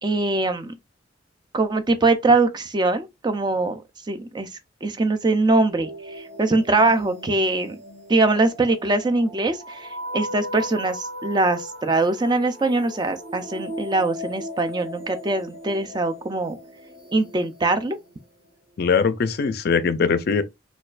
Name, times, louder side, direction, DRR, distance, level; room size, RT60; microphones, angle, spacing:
voice 1, 0.0-0.7 1.5-3.8 4.1-4.5 4.8-7.8 8.1-16.6 17.1-18.0, right 2 dB, 20° right, 0.4 m, -22 dB
sound 1, 5.7-18.4, left 1 dB, 60° right, 1.2 m, -38 dB
voice 2, 18.8-20.4, left 5 dB, 55° left, 0.4 m, -21 dB
4.2 x 2.3 x 2.4 m
head